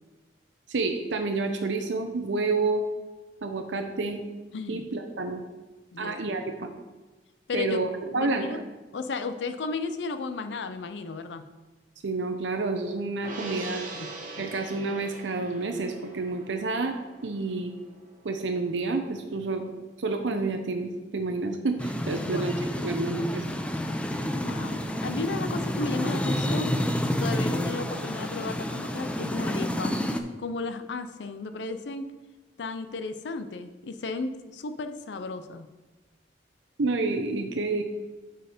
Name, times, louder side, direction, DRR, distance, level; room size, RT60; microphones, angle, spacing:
voice 1, 0.7-2.8 3.4-4.2 4.7-5.4 6.0-6.7 7.5-8.6 12.0-13.8 14.4-17.0 17.2-17.7 18.2-19.6 20.0-22.5 22.8-23.4 36.8-37.8, right 3 dB, 85° right, 5 dB, 0.6 m, -29 dB
voice 2, 4.5-4.8 5.9-6.1 7.5-7.8 8.1-8.6 8.9-11.4 14.0-14.1 22.3-22.5 24.3-26.8 27.2-30.0 30.4-32.1 32.6-35.7, left 3 dB, 70° left, 9 dB, 0.5 m, -34 dB
Gong, 13.2-19.8 20.2-20.3, right 3 dB, 50° right, 1.3 m, -43 dB
sound 1, 21.8-30.2, equal, 5° left, 0.5 m, -29 dB
7.7 x 4.6 x 5.0 m, 1.2 s
head